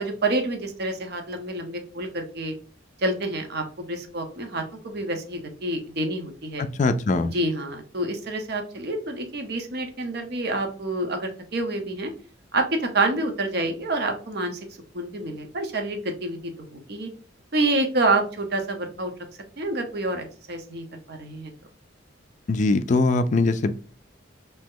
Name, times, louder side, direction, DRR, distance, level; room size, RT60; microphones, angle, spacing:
voice 1, 0.0-2.5 3.0-6.6 7.3-12.1 12.5-14.6 14.9-17.1 17.5-19.1 19.6-21.5, right 2 dB, 55° right, 5 dB, 0.8 m, -28 dB
voice 2, 6.6-7.3 22.5-23.7, left 3 dB, 40° left, 10 dB, 0.3 m, -22 dB
3.2 x 2.9 x 3.6 m, 0.39 s
head